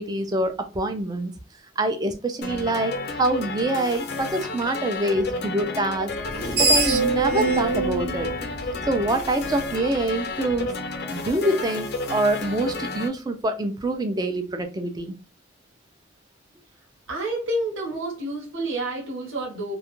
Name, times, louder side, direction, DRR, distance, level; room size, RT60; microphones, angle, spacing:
voice 1, 0.0-1.3 1.8-6.1 6.6-8.3 8.9-10.7 11.1-15.2, right 2 dB, 20° right, 0.3 m, -25 dB
sound 1, 2.4-13.1, left 3 dB, 55° left, 0.4 m, -32 dB
Screech, 6.2-9.4, right 2 dB, 50° right, 0.7 m, -24 dB
voice 2, 17.1-19.7, right 1 dB, 80° right, 0.9 m, -29 dB
2.3 x 2.1 x 2.9 m
head